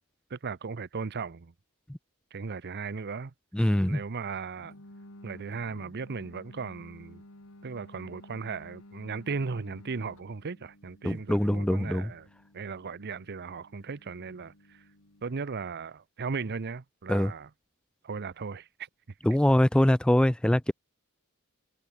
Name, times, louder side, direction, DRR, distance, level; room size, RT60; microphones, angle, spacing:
voice 1, 0.3-1.5 2.3-3.3 3.9-4.7 5.2-7.2 7.6-12.3 12.5-14.8 15.2-17.5 18.0-18.7, right 5 dB, 50° right, 0.7 m, -37 dB
voice 2, 3.5-4.0 11.0-12.1 17.1-17.3 19.2-20.7, left 1 dB, 5° left, 0.4 m, -23 dB
sound 1, 4.6-15.4, left 1 dB, 70° left, 4.3 m, -53 dB
head